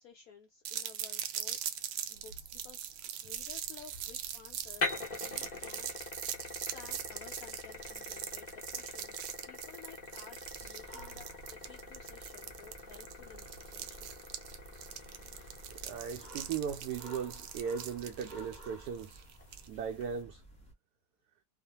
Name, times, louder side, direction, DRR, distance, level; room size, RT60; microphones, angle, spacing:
voice 1, 0.0-1.6 2.1-5.9 6.5-14.2, left 7 dB, 90° left, 0.7 m, -55 dB
sound 1, 0.7-19.7, right 10 dB, 85° right, 1.4 m, -42 dB
sound 2, 3.3-20.2, left 3 dB, 50° left, 0.5 m, -45 dB
sound 3, 10.4-20.7, right 1 dB, 5° left, 0.6 m, -54 dB
voice 2, 15.7-19.2 19.7-20.4, right 7 dB, 70° right, 1.0 m, -38 dB
3.1 x 2.1 x 2.8 m
omnidirectional pair, 2.1 m